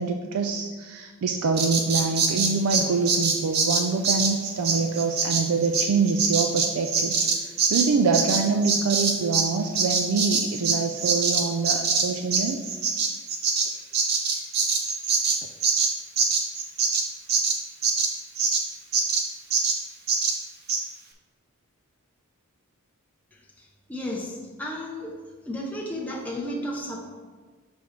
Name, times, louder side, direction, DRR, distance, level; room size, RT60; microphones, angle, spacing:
voice 1, 0.0-7.2 7.4-12.8, right 4 dB, 90° right, 5 dB, 0.4 m, -25 dB
Bird vocalization bird call bird song, 1.6-9.5 9.7-18.6 18.9-19.3 19.5-19.8 20.1-20.4 20.7-20.8, right 5 dB, 50° right, 0.7 m, -24 dB
voice 2, 23.6-25.2 25.5-27.1, left 1 dB, 5° left, -3 dB, 0.6 m, -33 dB
6.0 x 5.2 x 3.2 m, 1.5 s
head